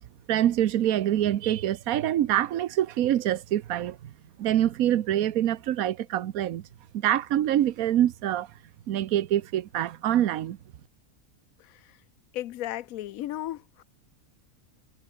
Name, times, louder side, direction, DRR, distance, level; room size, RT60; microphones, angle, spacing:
voice 1, 0.3-4.1 4.4-6.7 6.9-8.5 8.9-10.6, right 12 dB, 80° right, 1.3 m, -25 dB
voice 2, 11.6-12.0 12.3-13.8, left 13 dB, 80° left, 1.1 m, -35 dB
omnidirectional pair, 1.5 m